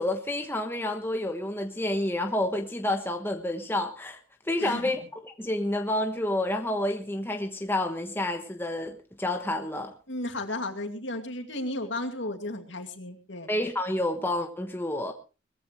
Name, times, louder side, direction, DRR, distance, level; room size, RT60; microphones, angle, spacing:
voice 1, 0.0-4.2 4.4-9.9 13.5-15.1, left 1 dB, 10° left, 4 dB, 1.2 m, -29 dB
voice 2, 4.6-5.0 10.1-13.5, left 2 dB, 70° left, 5 dB, 2.4 m, -34 dB
20.5 x 15.0 x 3.2 m, 0.33 s
head